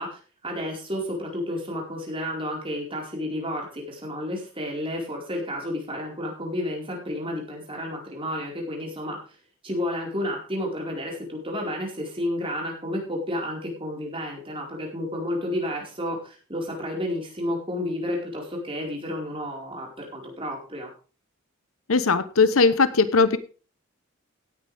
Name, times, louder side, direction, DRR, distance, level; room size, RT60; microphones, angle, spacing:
voice 1, 0.0-9.2 9.6-20.9, left 1 dB, 25° right, -1 dB, 4.7 m, -31 dB
voice 2, 21.9-23.4, left 4 dB, 75° left, 14 dB, 1.0 m, -19 dB
17.0 x 9.5 x 3.5 m, 0.36 s
head